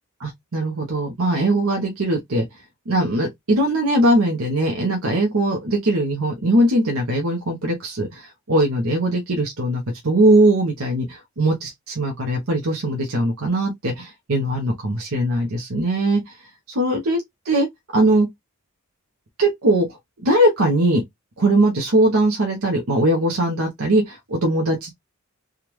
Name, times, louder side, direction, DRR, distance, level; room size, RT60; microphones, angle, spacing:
voice 1, 0.2-2.4 2.9-16.2 16.7-17.2 17.4-17.7 17.9-18.3 19.4-21.0 21.4-24.9, right 1 dB, 90° right, 1.0 m, -20 dB
3.6 x 2.4 x 3.0 m
head